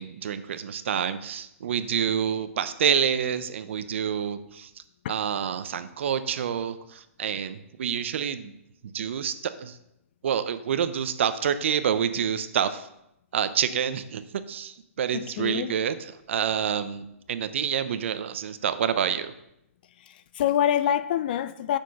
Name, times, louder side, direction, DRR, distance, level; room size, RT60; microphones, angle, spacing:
voice 1, 0.0-4.7 5.1-8.5 8.8-9.8 10.2-12.9 13.3-19.3, right 8 dB, 55° right, 12 dB, 0.8 m, -28 dB
voice 2, 15.1-15.7 20.4-21.8, left 10 dB, 40° left, 14 dB, 0.5 m, -25 dB
9.0 x 6.6 x 5.5 m, 0.82 s
hypercardioid pair, 160°, 8 cm